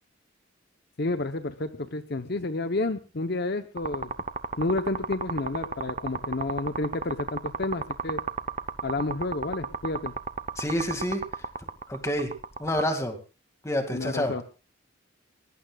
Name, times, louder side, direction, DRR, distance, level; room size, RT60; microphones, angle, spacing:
voice 1, 1.0-4.1 4.6-8.2 8.8-10.1 13.9-14.4, left 2 dB, 50° left, 8 dB, 0.9 m, -30 dB
sound 1, 3.8-12.8, right 5 dB, 35° right, 0.8 m, -33 dB
voice 2, 10.6-11.2 11.9-12.3 12.6-13.2 13.6-14.4, left 1 dB, 15° left, 6 dB, 2.2 m, -28 dB
22.0 x 18.5 x 2.4 m, 0.33 s
head